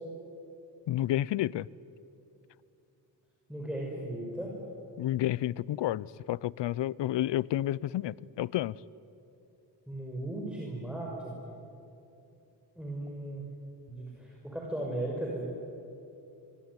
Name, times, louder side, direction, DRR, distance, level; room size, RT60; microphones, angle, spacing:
voice 1, 0.9-1.7 5.0-8.7, left 13 dB, 75° left, 0.7 m, -30 dB
voice 2, 3.5-4.5 9.9-11.3 12.8-13.5 13.9-15.5, right 1 dB, ahead, 5.8 m, -36 dB
26.0 x 23.5 x 9.7 m
cardioid pair, 80°, 43 cm